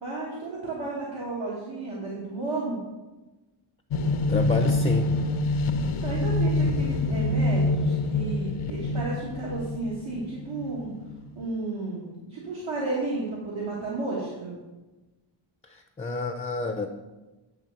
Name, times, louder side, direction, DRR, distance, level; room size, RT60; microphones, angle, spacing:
voice 1, 0.0-2.8 5.8-10.9 11.3-14.6, right 3 dB, 70° right, -6 dB, 1.7 m, -32 dB
sound 1, 3.9-11.4, left 2 dB, 80° left, 0.6 m, -26 dB
voice 2, 4.3-5.1 15.7-16.9, left 3 dB, 15° left, 5 dB, 0.4 m, -28 dB
8.6 x 3.5 x 6.6 m, 1.1 s
wide cardioid pair, 125°, 49 cm